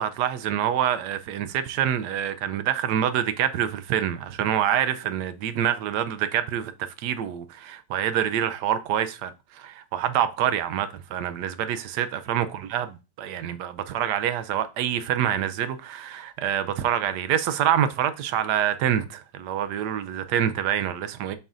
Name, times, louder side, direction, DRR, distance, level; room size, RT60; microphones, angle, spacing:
voice 1, 0.0-12.5 12.7-12.9 13.2-21.4, right 10 dB, 75° right, 1.2 m, -26 dB
7.0 x 5.5 x 2.5 m
omnidirectional pair, 1.9 m